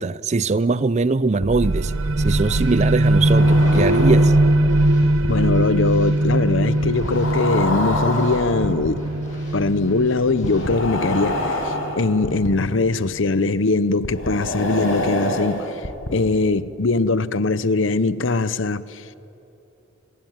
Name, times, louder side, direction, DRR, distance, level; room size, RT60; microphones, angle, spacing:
voice 1, 0.0-4.3, right 3 dB, 35° right, 0.5 m, -21 dB
sound 1, 1.4-1.7 3.0-4.5 5.0-5.3 6.8-8.9 10.4-12.5 14.0-16.1, left 1 dB, 80° left, 4.7 m, -26 dB
sound 2, 1.5-12.9, right 1 dB, 85° right, 0.9 m, -20 dB
Drum kit / Snare drum, 1.6-10.6, left 1 dB, 40° left, 7.9 m, -41 dB
voice 2, 5.3-9.1 9.5-19.0, left 3 dB, 65° left, 0.8 m, -21 dB
25.5 x 20.5 x 9.4 m
head